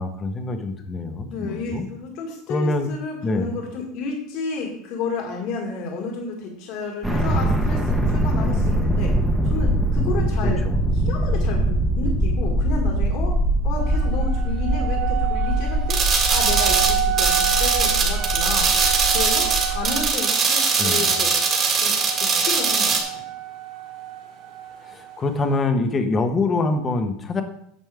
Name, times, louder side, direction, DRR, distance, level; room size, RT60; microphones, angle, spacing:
voice 1, 0.0-1.9 2.5-2.9 3.2-3.5 10.4-11.3 20.8-21.1 24.8-27.4, left 3 dB, 25° left, 7 dB, 1.0 m, -25 dB
voice 2, 1.3-9.1 9.4-10.6 11.1-13.4 13.6-16.0 16.3-18.7 19.1-21.3 21.8-23.2, left 4 dB, 60° left, 0 dB, 1.8 m, -31 dB
sound 1, 7.0-20.1, right 1 dB, 5° right, 1.0 m, -22 dB
sound 2, 13.8-25.6, right 13 dB, 65° right, 3.1 m, -30 dB
sound 3, 15.9-23.0, right 4 dB, 30° right, 1.8 m, -21 dB
9.2 x 6.2 x 3.5 m, 0.71 s
supercardioid pair, 135°, 0 cm